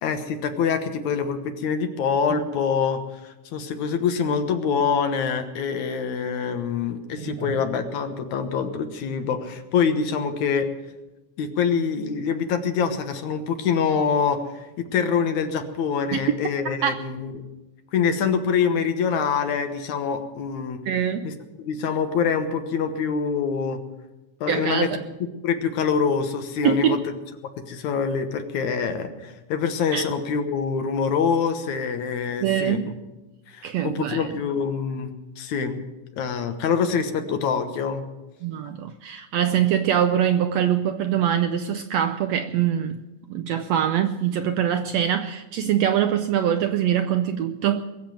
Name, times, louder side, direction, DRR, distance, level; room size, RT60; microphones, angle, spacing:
voice 1, 0.0-10.7 11.4-17.3 17.9-20.8 21.2-21.3 21.6-23.8 24.4-24.9 25.4-27.1 27.7-32.8 33.5-35.8 36.2-38.1, left 6 dB, 70° left, 7 dB, 2.5 m, -25 dB
voice 2, 7.2-7.6 16.1-16.2 16.8-17.0 20.9-21.4 24.5-25.0 26.6-27.0 29.9-30.1 32.4-32.9 33.6-34.3 38.4-43.0 43.3-47.8, right 9 dB, 80° right, 8 dB, 1.5 m, -23 dB
21.5 x 7.5 x 8.9 m, 1.1 s
omnidirectional pair, 3.6 m